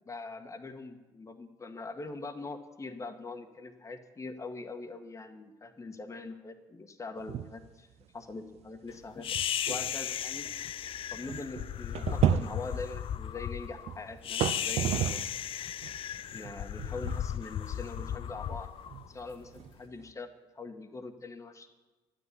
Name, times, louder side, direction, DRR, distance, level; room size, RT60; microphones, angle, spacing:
voice 1, 0.1-7.9 8.1-9.3 9.7-10.5 11.1-15.3 16.3-18.7 19.1-20.3 20.5-21.7, left 3 dB, 25° left, 4 dB, 1.7 m, -43 dB
sound 1, 7.2-7.7 8.0-8.1 8.8-8.9 9.3-15.4 15.8-20.1, right 11 dB, 65° right, 0.7 m, -34 dB
sound 2, 9.2-19.6, left 10 dB, 50° left, 0.4 m, -36 dB
12.0 x 10.0 x 9.8 m, 1.2 s
supercardioid pair, 70°, 11 cm